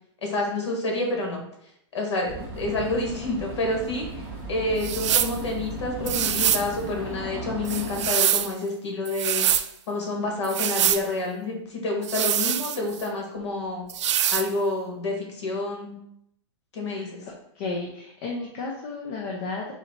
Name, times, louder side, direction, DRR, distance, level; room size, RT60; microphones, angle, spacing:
voice 1, 0.2-1.4 1.9-4.2 4.5-9.5 9.9-13.8 14.3-15.9 16.7-17.2, left 2 dB, 70° left, 1 dB, 1.5 m, -28 dB
sound 1, 2.3-8.1, right 2 dB, 15° right, 0.7 m, -36 dB
sound 2, 4.8-5.4 6.1-6.7 7.7-8.5 9.1-9.7 10.4-11.0 12.0-13.1 13.9-14.5, right 10 dB, 85° right, 0.4 m, -24 dB
voice 2, 17.5-19.7, left 3 dB, 25° left, 0 dB, 0.4 m, -32 dB
4.1 x 2.6 x 4.3 m, 0.74 s
supercardioid pair, 175°, 15 cm